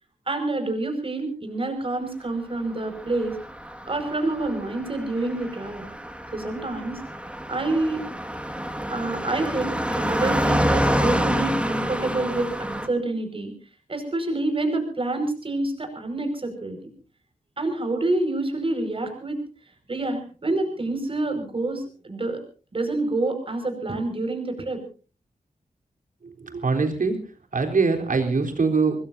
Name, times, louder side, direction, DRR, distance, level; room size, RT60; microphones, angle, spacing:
voice 1, 0.3-3.4 3.9-5.9 6.3-7.0 7.5-8.0 8.9-13.5 13.9-16.8 17.6-19.4 19.9-22.4 22.7-24.8, right 2 dB, 40° right, 6 dB, 5.3 m, -27 dB
Car passing by, 2.9-12.9, equal, 10° right, 1.9 m, -28 dB
voice 2, 26.2-27.2 27.5-29.0, right 4 dB, 65° right, 4 dB, 3.7 m, -23 dB
25.5 x 20.5 x 2.7 m, 0.37 s
wide cardioid pair, 120°, 15 cm